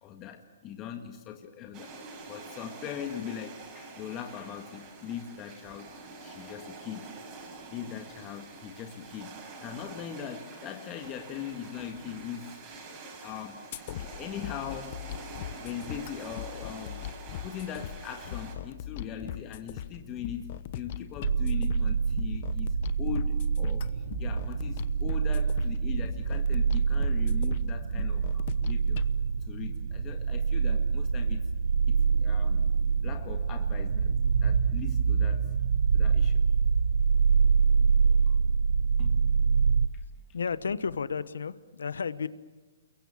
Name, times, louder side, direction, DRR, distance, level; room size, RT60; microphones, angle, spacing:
voice 1, 0.0-5.9 6.2-7.1 7.4-12.6 13.2-13.6 14.0-15.0 15.6-17.0 17.4-29.0 29.5-31.5 31.9-32.6 33.0-34.1 34.4-35.5 35.9-36.4 38.0-38.4 39.0-39.3 39.9-40.0, left 8 dB, 25° left, 4 dB, 1.8 m, -41 dB
sound 1, 1.7-18.5, right 3 dB, 30° right, 7.3 m, -46 dB
sound 2, 13.7-29.1, left 11 dB, 45° left, 1.0 m, -40 dB
sound 3, 21.2-39.9, right 5 dB, 70° right, 0.8 m, -25 dB
voice 2, 40.3-42.3, left 5 dB, 80° left, 16 dB, 1.1 m, -32 dB
29.0 x 22.5 x 7.4 m, 1.2 s
hypercardioid pair, 140°, 0 cm